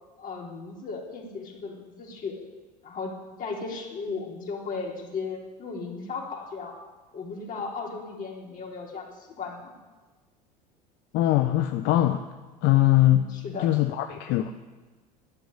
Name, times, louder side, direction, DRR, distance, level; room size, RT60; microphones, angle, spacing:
voice 1, 0.2-2.4 2.8-6.8 7.1-9.7 12.9-13.7, left 4 dB, 40° left, -1 dB, 3.9 m, -36 dB
voice 2, 11.1-12.3 12.6-14.5, left 14 dB, 55° left, 7 dB, 1.0 m, -22 dB
12.5 x 9.6 x 9.9 m, 1.3 s
hypercardioid pair, 75°, 21 cm